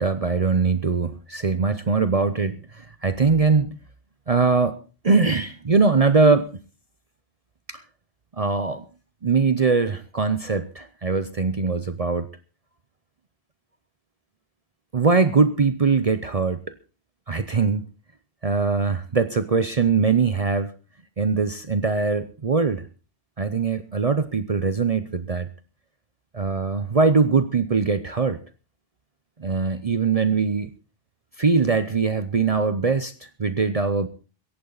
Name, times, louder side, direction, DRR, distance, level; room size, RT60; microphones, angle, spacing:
voice 1, 0.0-3.8 4.3-4.8 5.0-6.5 7.7-7.8 8.3-8.8 9.2-12.3 14.9-16.6 17.3-17.8 18.4-20.7 21.2-22.9 23.4-25.5 26.3-28.4 29.4-30.7 31.4-34.1, right 4 dB, 40° right, 12 dB, 0.8 m, -21 dB
17.5 x 15.0 x 4.0 m, 0.35 s
omnidirectional pair, 1.0 m